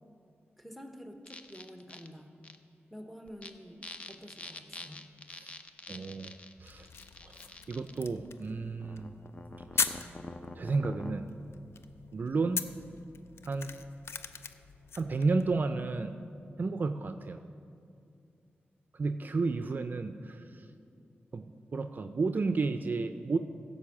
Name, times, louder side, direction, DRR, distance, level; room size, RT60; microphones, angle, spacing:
voice 1, 0.6-2.4 2.9-5.1, equal, ahead, 4 dB, 1.0 m, -48 dB
sound 1, 1.3-2.1 2.4-2.6 3.3-3.5 3.8-8.0 8.8-11.1, left 2 dB, 30° left, 0.6 m, -46 dB
voice 2, 5.9-6.3 6.6-6.9 7.2-7.3 7.7-9.1 9.7-10.0 10.5-11.3 12.1-12.6 13.5-13.7 15.0-16.1 16.6-17.4 19.0-20.6 21.3-23.4, right 3 dB, 50° right, 8 dB, 0.4 m, -32 dB
sound 2, 6.6-15.7, left 5 dB, 80° left, 0.5 m, -40 dB
15.5 x 5.4 x 7.2 m, 2.4 s
wide cardioid pair, 100°, 4 cm